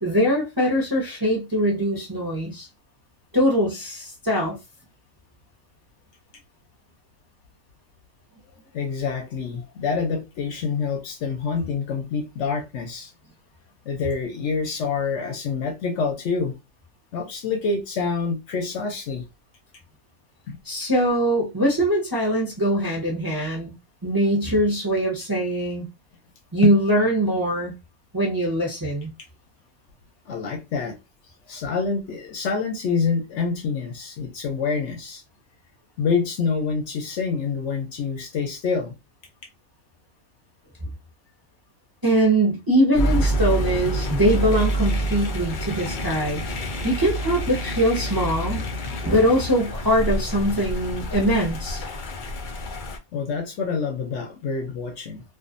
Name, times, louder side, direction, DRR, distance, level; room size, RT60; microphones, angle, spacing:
voice 1, 0.0-2.7 3.3-4.6 20.6-23.7 24.0-25.9 26.5-27.7 28.1-29.1 42.0-46.4 46.8-48.7 49.0-51.8, equal, 30° right, 0.4 m, -22 dB
voice 2, 8.7-13.1 13.9-16.6 17.1-19.2 20.5-20.6 26.6-26.8 30.3-31.0 31.5-35.2 36.0-38.9 53.1-55.2, left 5 dB, 65° left, 0.8 m, -26 dB
sound 1, 42.9-53.0, right 1 dB, 85° left, 0.4 m, -27 dB
2.4 x 2.4 x 2.5 m
omnidirectional pair, 1.5 m